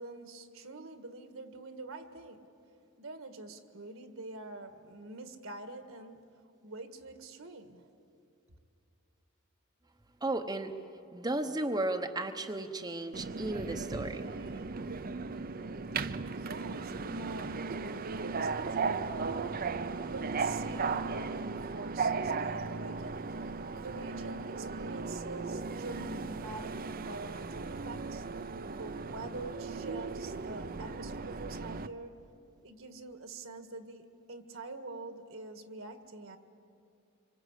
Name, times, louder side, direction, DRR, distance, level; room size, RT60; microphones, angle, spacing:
voice 1, 0.0-2.4 3.0-6.2 6.6-7.9 16.3-19.5 20.1-23.2 23.8-28.2 28.7-32.1 32.6-36.4, right 2 dB, 70° right, 8 dB, 1.7 m, -45 dB
voice 2, 10.2-10.8 11.1-14.6, right 2 dB, 20° right, 5 dB, 0.9 m, -34 dB
Subway metro underground, 13.1-31.9, right 4 dB, 45° right, 0.6 m, -36 dB
26.0 x 24.5 x 8.2 m, 2.6 s
head